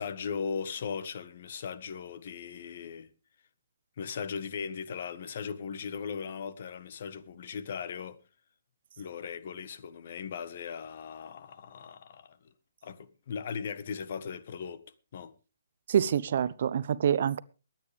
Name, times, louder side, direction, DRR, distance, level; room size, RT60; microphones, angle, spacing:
voice 1, 0.0-3.1 4.0-8.2 9.0-12.4 12.8-14.8 15.1-15.3, left 6 dB, 55° left, 1.4 m, -38 dB
voice 2, 15.9-17.4, right 8 dB, 55° right, 0.7 m, -26 dB
23.0 x 9.1 x 3.4 m
hypercardioid pair, 150°, 0 cm